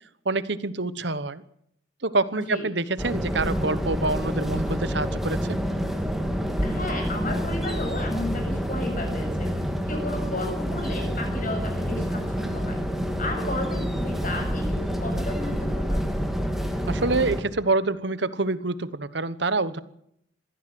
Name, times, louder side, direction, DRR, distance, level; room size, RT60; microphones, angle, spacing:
voice 1, 0.2-1.4 2.0-5.6 16.9-19.8, right 3 dB, 60° right, 15 dB, 1.2 m, -26 dB
sound 1, 3.0-17.4, equal, ahead, 2.4 m, -28 dB
voice 2, 6.6-9.5 9.9-12.8 13.2-16.0, left 1 dB, 40° left, 3 dB, 7.6 m, -33 dB
22.5 x 15.5 x 7.8 m, 0.74 s
head